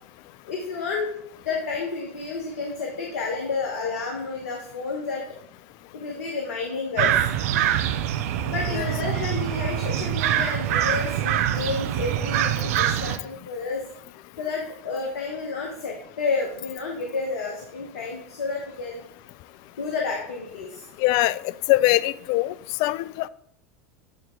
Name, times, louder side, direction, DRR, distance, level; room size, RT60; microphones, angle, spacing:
voice 1, 0.4-1.1 1.4-5.2 5.9-7.3 8.4-13.8 14.4-19.0 19.8-20.9, left 4 dB, 80° left, 1.2 m, -30 dB
sound 1, 7.0-13.2, right 11 dB, 70° right, 0.5 m, -24 dB
voice 2, 21.0-22.5 22.8-23.3, left 17 dB, 55° left, 0.3 m, -22 dB
8.5 x 4.4 x 3.7 m
hypercardioid pair, 90°, 8 cm